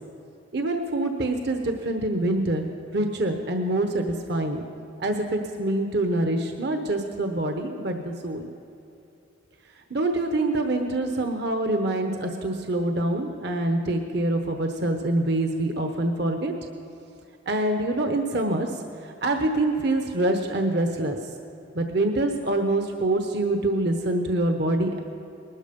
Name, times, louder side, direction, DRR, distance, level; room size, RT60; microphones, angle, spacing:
voice 1, 0.5-4.6 5.0-8.5 9.9-16.5 17.5-18.7 19.0-21.2 21.7-25.0, right 1 dB, 60° right, 5 dB, 1.0 m, -25 dB
20.0 x 12.5 x 5.3 m, 2.8 s
head